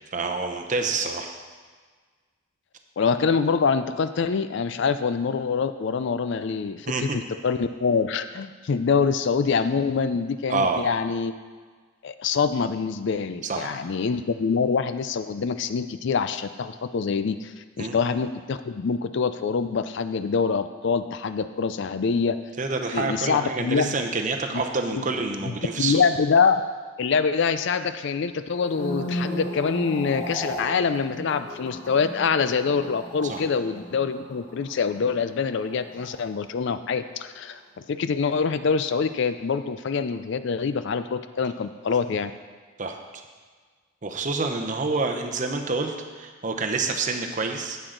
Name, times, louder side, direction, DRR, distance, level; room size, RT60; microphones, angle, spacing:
voice 1, 0.1-1.3 6.9-7.2 10.5-10.8 13.4-13.8 17.8-17.9 22.6-26.0 33.2-33.4 42.8-43.0 44.0-47.8, right 3 dB, 35° right, 4 dB, 0.8 m, -27 dB
voice 2, 3.0-11.3 12.0-22.4 22.9-23.9 24.5-24.6 24.9-25.0 25.5-26.6 27.0-42.3, left 5 dB, 55° left, 11 dB, 0.4 m, -25 dB
sound 1, 28.5-36.9 37.1-37.5, equal, 35° left, 3.0 m, -36 dB
10.5 x 8.0 x 3.9 m, 1.5 s
head